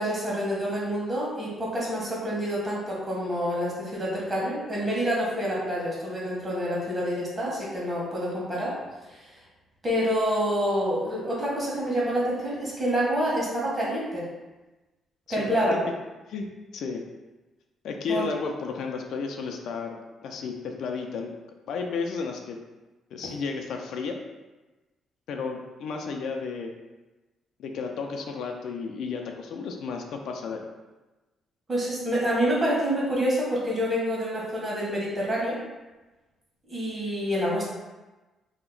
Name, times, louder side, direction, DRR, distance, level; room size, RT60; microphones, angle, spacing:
voice 1, 0.0-8.7 9.8-14.2 15.3-15.7 18.1-18.2 31.7-35.6 36.7-37.7, equal, 30° right, -5 dB, 1.3 m, -27 dB
voice 2, 17.8-21.3 21.7-22.6 23.1-24.2 25.3-26.7 27.6-30.7, left 5 dB, 75° left, 3 dB, 0.4 m, -33 dB
2.8 x 2.1 x 3.8 m, 1.1 s
cardioid pair, 90°, 0 cm